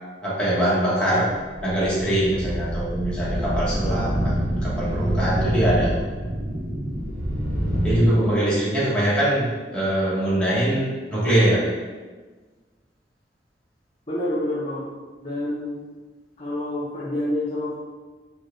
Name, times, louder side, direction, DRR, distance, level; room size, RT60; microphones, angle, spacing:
voice 1, 0.2-1.3 1.6-6.0 7.8-9.5 9.7-11.7, right 1 dB, 5° left, -9 dB, 1.0 m, -22 dB
sound 1, 1.4-8.1, equal, 60° right, 0.9 m, -26 dB
voice 2, 14.1-14.9 15.2-15.8 16.4-17.8, left 1 dB, 35° left, -8 dB, 0.6 m, -27 dB
4.5 x 2.2 x 3.1 m, 1.3 s
head